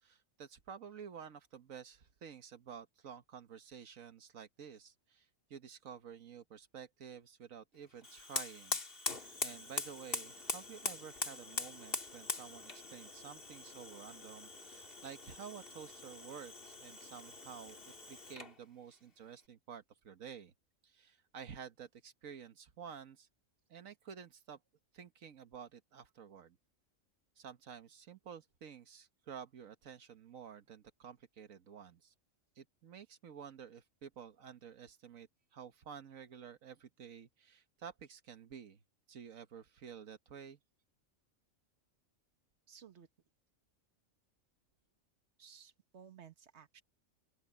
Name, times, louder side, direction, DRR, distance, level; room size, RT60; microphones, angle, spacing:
voice 1, 0.0-9.2 9.4-20.5 20.8-23.3 23.7-24.6 24.9-26.6 27.4-32.1 32.5-38.8 39.1-40.6, right 7 dB, 85° right, 1.5 m, -51 dB
Fire, 8.0-18.6, left 3 dB, 45° left, 2.3 m, -43 dB
voice 2, 42.7-43.1 45.4-46.8, right 7 dB, 60° right, 1.7 m, -57 dB
open air
omnidirectional pair, 1.4 m